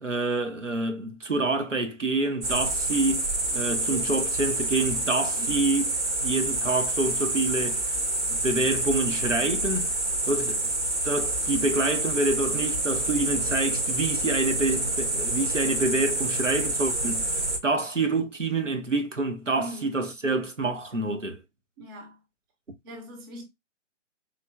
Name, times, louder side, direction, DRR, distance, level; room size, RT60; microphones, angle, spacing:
voice 1, 0.0-3.2 3.5-5.9 6.2-7.8 8.3-9.9 10.3-10.6 11.0-17.3 17.6-21.4, right 2 dB, 90° right, 1.2 m, -27 dB
sound 1, 2.4-17.6, right 2 dB, 65° right, 2.2 m, -27 dB
voice 2, 5.4-5.8 19.6-20.1 21.8-22.2 22.8-23.5, left 1 dB, 20° right, 0.8 m, -41 dB
4.3 x 3.3 x 2.2 m
figure-of-eight pair, 130°, 36 cm